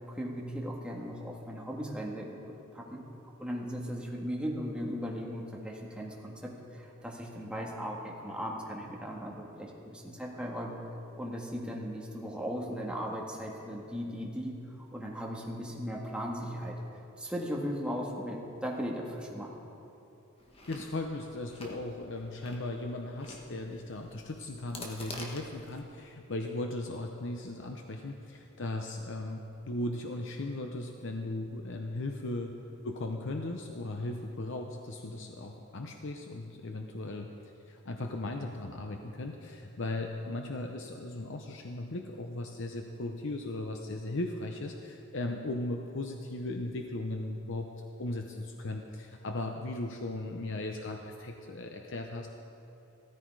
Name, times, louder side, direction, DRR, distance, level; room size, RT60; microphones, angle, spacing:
voice 1, 0.1-2.4 2.7-3.1 3.4-16.8 17.2-19.5, equal, 5° right, -2 dB, 1.7 m, -37 dB
Chewing mastication, 20.4-25.8, left 2 dB, 25° left, 1.4 m, -48 dB
voice 2, 20.7-52.3, left 2 dB, 60° left, 3 dB, 0.8 m, -37 dB
15.5 x 14.0 x 4.8 m, 2.9 s
head